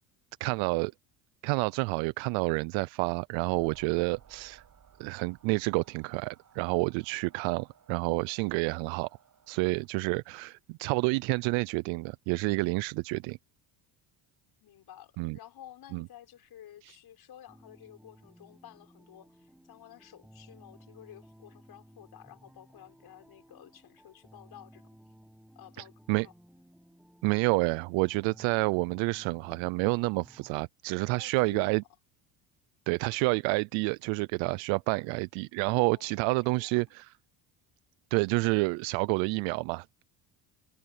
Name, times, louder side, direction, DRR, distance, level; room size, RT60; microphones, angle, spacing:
voice 1, 0.4-0.9 1.4-4.6 5.0-9.1 9.5-13.4 15.2-15.4 15.9-16.0 16.8-17.0 25.8-26.3 27.2-31.8 32.9-37.1 38.1-40.0, right 27 dB, 75° right, 0.6 m, -29 dB
sound 1, 3.5-9.9, right 8 dB, 40° right, 5.8 m, -60 dB
voice 2, 14.6-24.9 25.6-26.3 31.2-31.9 35.9-36.7, left 11 dB, 55° left, 5.9 m, -52 dB
sound 2, 17.5-30.5, equal, ahead, 6.6 m, -57 dB
supercardioid pair, 95°, 46 cm